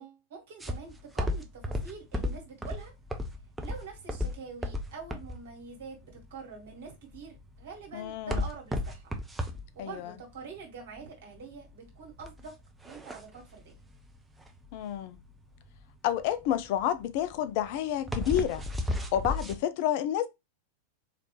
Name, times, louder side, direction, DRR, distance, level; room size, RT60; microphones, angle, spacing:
voice 1, 0.0-2.9 3.6-9.1 9.8-12.5 12.8-13.8, right 5 dB, 55° right, 1.8 m, -45 dB
sound 1, 0.6-19.6, left 1 dB, 10° right, 0.7 m, -35 dB
voice 2, 7.9-8.4 9.8-10.1 14.7-15.2 16.0-18.6 19.1-20.3, left 11 dB, 45° left, 0.4 m, -29 dB
4.0 x 3.2 x 3.0 m
figure-of-eight pair, 90°, 0 cm